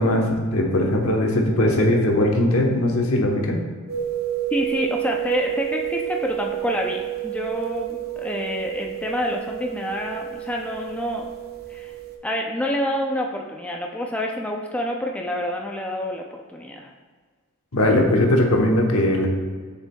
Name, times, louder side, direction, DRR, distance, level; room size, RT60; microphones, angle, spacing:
voice 1, 0.0-3.6 17.7-19.3, left 1 dB, 80° left, 1 dB, 1.0 m, -19 dB
sound 1, 3.9-12.2, right 14 dB, 45° right, 0.7 m, -30 dB
voice 2, 4.5-11.3 11.7-11.9 12.2-16.9, equal, 5° left, 0 dB, 0.4 m, -27 dB
7.1 x 6.9 x 2.3 m, 1.5 s
head